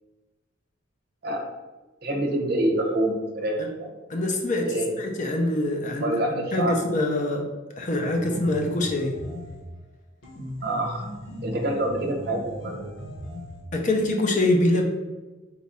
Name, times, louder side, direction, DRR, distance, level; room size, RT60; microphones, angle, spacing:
voice 1, 2.0-3.9 4.7-5.0 6.0-6.7 10.6-11.1 11.4-12.9, right 1 dB, 50° right, 2 dB, 0.6 m, -26 dB
voice 2, 4.1-7.4 7.8-9.1 13.7-14.8, left 1 dB, 40° left, 2 dB, 0.5 m, -24 dB
sound 1, 7.9-9.7 10.2-13.7, equal, 70° left, 1.1 m, -38 dB
4.0 x 2.4 x 4.1 m, 1.2 s
head